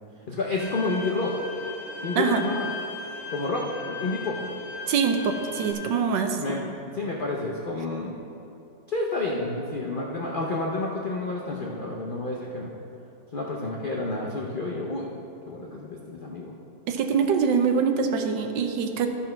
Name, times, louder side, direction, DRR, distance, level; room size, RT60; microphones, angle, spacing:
voice 1, 0.3-1.4 2.0-2.7 3.3-4.4 6.3-8.3 8.9-12.7 13.3-15.1 15.5-16.5, left 2 dB, 85° left, -2 dB, 0.4 m, -30 dB
Bowed string instrument, 0.6-5.7, left 4 dB, 40° left, 1.3 m, -37 dB
voice 2, 4.9-6.4 16.9-19.1, right 6 dB, 75° right, 5 dB, 1.3 m, -24 dB
13.0 x 4.4 x 5.7 m, 2.9 s
omnidirectional pair, 2.0 m